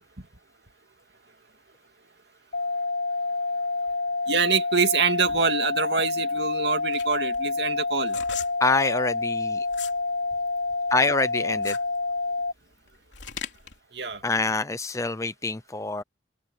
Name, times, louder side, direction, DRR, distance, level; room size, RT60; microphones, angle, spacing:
sound 1, 2.5-12.5, left 3 dB, 55° left, 0.6 m, -28 dB
voice 1, 4.3-8.2 13.9-14.2, right 5 dB, 70° right, 2.3 m, -25 dB
sound 2, 6.4-10.0 10.4-13.8, left 8 dB, 85° left, 3.2 m, -39 dB
voice 2, 8.6-9.7 10.9-11.8 14.2-16.0, left 3 dB, 15° left, 0.7 m, -25 dB
head